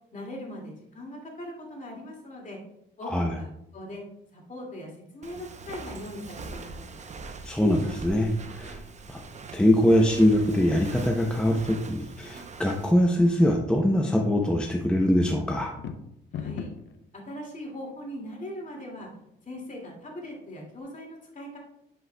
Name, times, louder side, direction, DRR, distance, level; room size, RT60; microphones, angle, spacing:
voice 1, 0.1-2.6 3.0-4.0 4.3-7.0 16.3-16.7 17.1-19.1 19.4-21.6, left 1 dB, 40° left, -1 dB, 2.2 m, -40 dB
Walk footsteps, 5.2-12.9, right 3 dB, 35° right, 0.7 m, -42 dB
voice 2, 7.4-8.8 9.1-9.2 9.5-15.7, left 1 dB, 5° left, 1 dB, 0.6 m, -23 dB
sound 1, 15.6-17.0, left 7 dB, 65° left, 0.6 m, -36 dB
8.4 x 5.3 x 2.2 m, 0.79 s
cardioid pair, 90°, 20 cm